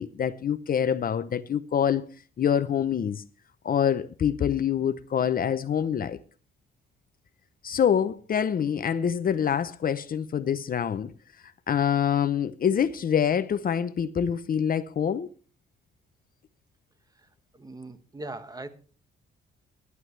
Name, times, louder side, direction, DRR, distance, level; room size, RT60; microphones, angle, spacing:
voice 1, 0.0-2.1 2.4-3.2 3.6-6.2 7.6-11.1 11.7-15.3, left 8 dB, 45° left, 0.7 m, -25 dB
voice 2, 17.1-18.7, right 2 dB, 20° right, 1.6 m, -41 dB
19.5 x 11.0 x 3.3 m
cardioid pair, 90°, 20 cm